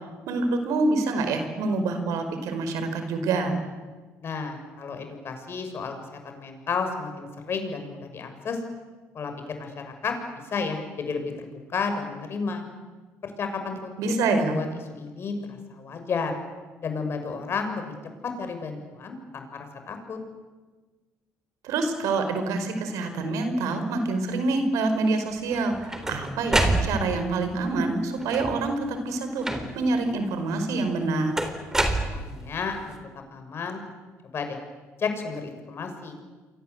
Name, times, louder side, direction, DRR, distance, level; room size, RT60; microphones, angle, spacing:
voice 1, 0.3-3.6 14.0-14.6 21.6-29.5 29.7-31.3, right 3 dB, 75° right, 7 dB, 5.0 m, -26 dB
voice 2, 4.2-8.6 9.1-9.3 9.6-10.1 10.5-12.6 13.2-16.3 16.8-17.9 18.4-19.4 19.9-20.2 32.1-32.9 33.3-33.8 34.3-34.6 35.0-36.2, left 5 dB, 45° left, 6 dB, 6.2 m, -32 dB
sound 1, 25.5-27.3 28.2-28.7 29.4-30.0 31.4-32.6, right 1 dB, 10° right, 3.9 m, -27 dB
28.5 x 24.0 x 8.2 m, 1.3 s
cardioid pair, 95°, 6 cm